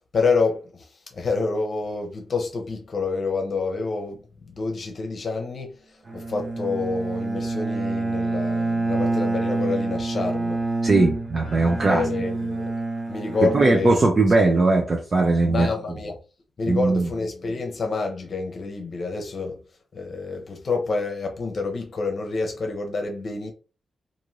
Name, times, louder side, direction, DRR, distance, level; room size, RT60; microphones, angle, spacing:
voice 1, 0.1-0.9 1.1-5.7 6.1-10.6 11.9-12.7 13.1-13.9 15.5-16.2 16.6-19.6 19.9-23.5, left 4 dB, 55° left, 0.7 m, -28 dB
Bowed string instrument, 6.1-14.5, right 2 dB, 60° right, 0.9 m, -27 dB
voice 2, 10.8-12.1 13.4-15.7 16.7-17.1, right 3 dB, 40° right, 0.6 m, -19 dB
2.6 x 2.6 x 3.1 m
cardioid pair, 95°, 0 cm